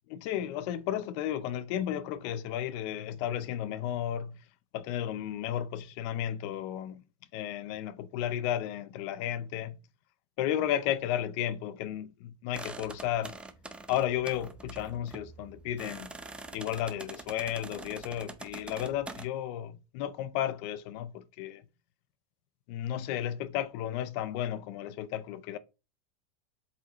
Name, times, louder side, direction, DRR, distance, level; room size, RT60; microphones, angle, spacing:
voice 1, 0.1-4.4 4.7-7.0 7.3-9.8 10.4-13.4 13.9-16.1 16.5-21.6 22.7-25.6, left 11 dB, 55° left, 0.6 m, -33 dB
sound 1, 12.5-19.3, right 3 dB, 5° right, 0.5 m, -45 dB
7.5 x 4.1 x 3.0 m
supercardioid pair, 145°, 18 cm